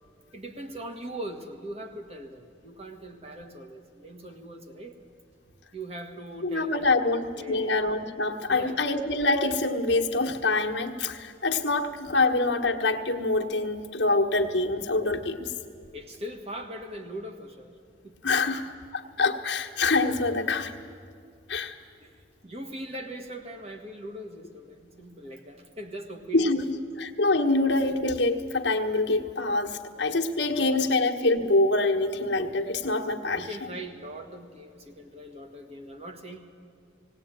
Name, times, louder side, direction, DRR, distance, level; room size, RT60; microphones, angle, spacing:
voice 1, 0.3-4.9 5.7-7.8 8.5-8.8 15.9-17.8 18.0-18.2 22.0-22.2 22.4-26.5 30.5-31.0 33.3-36.4, right 1 dB, 35° right, 4 dB, 1.7 m, -40 dB
voice 2, 6.4-15.5 18.2-20.7 21.5-21.8 26.3-33.7, left 2 dB, 70° left, 2 dB, 1.4 m, -25 dB
18.5 x 18.5 x 9.1 m, 2.3 s
head